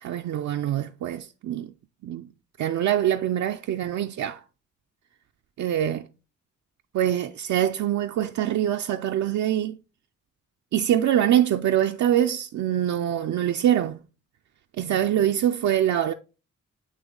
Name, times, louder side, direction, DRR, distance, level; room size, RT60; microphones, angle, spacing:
voice 1, 0.0-1.7 2.0-2.3 2.6-4.4 5.6-6.1 6.9-9.8 10.7-14.0 14.8-16.1, right 11 dB, 70° right, 0.4 m, -24 dB
9.0 x 3.1 x 3.7 m
cardioid pair, 85°, 30 cm